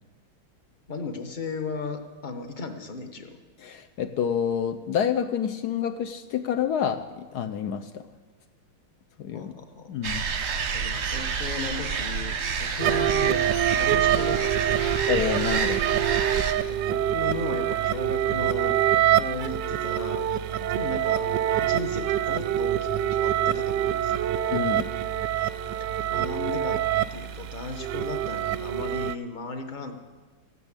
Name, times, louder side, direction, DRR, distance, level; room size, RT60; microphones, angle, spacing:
voice 1, 0.9-3.4 9.3-9.9 10.7-13.4 13.7-14.8 16.4-20.4 20.7-21.3 21.6-24.3 25.8-26.8 27.1-29.9, left 4 dB, 30° left, 6 dB, 0.9 m, -36 dB
voice 2, 3.6-8.1 9.2-9.5 9.9-10.3 15.1-15.8 24.5-24.9, left 8 dB, 70° left, 8 dB, 0.9 m, -28 dB
sound 1, 10.0-16.5, right 6 dB, 50° right, 0.8 m, -29 dB
sound 2, 12.8-29.2, right 11 dB, 75° right, 1.1 m, -25 dB
15.0 x 9.7 x 8.2 m, 1.3 s
omnidirectional pair, 2.4 m